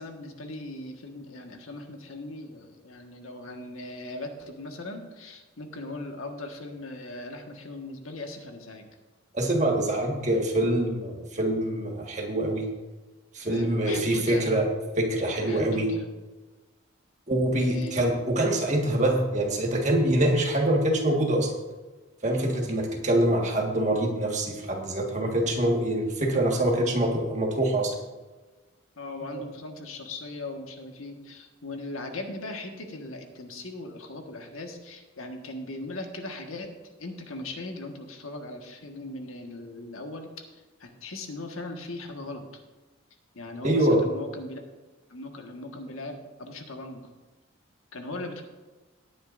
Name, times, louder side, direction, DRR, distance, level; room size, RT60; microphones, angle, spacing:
voice 1, 0.0-8.8 13.4-14.5 15.3-16.0 17.6-18.0 26.5-26.6 29.0-36.7 37.0-42.4 43.3-44.7 45.1-47.0 47.9-48.4, left 2 dB, 90° left, 3 dB, 1.5 m, -39 dB
voice 2, 9.3-12.7 13.3-14.7 15.0-15.9 17.3-21.5 22.2-27.9 29.3-29.4 43.6-44.0, right 1 dB, 35° right, 1 dB, 1.6 m, -25 dB
18.0 x 9.3 x 2.6 m, 1.2 s
head